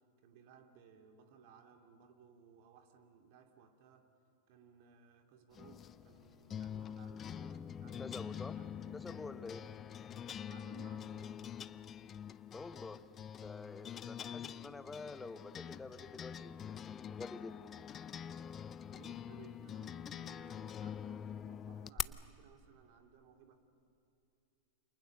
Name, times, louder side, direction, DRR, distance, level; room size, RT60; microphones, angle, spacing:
voice 1, 0.0-4.1 4.5-9.4 10.4-11.4 14.0-14.9 18.9-23.6, right 7 dB, 55° right, 5 dB, 2.8 m, -61 dB
sound 1, 5.5-22.0, left 8 dB, 30° left, 0.6 m, -45 dB
voice 2, 8.0-8.6 8.9-9.7 12.5-13.0 13.4-17.7, left 3 dB, 10° left, 12 dB, 1.1 m, -48 dB
29.5 x 27.5 x 6.7 m, 2.7 s
figure-of-eight pair, 90°, 0 cm